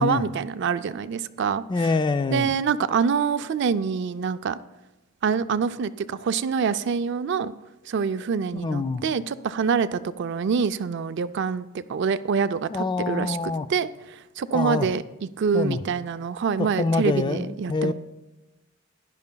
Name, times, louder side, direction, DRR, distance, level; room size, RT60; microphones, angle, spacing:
voice 1, 0.0-1.9 2.3-4.6 5.2-7.5 7.9-13.4 13.7-15.0 15.4-17.9, right 6 dB, 60° right, 13 dB, 0.4 m, -26 dB
voice 2, 1.7-2.5 8.6-9.0 12.7-13.7 14.5-14.9 15.5-15.8 16.6-17.9, left 3 dB, 25° left, 11 dB, 0.3 m, -25 dB
16.0 x 11.0 x 2.2 m, 1.0 s
head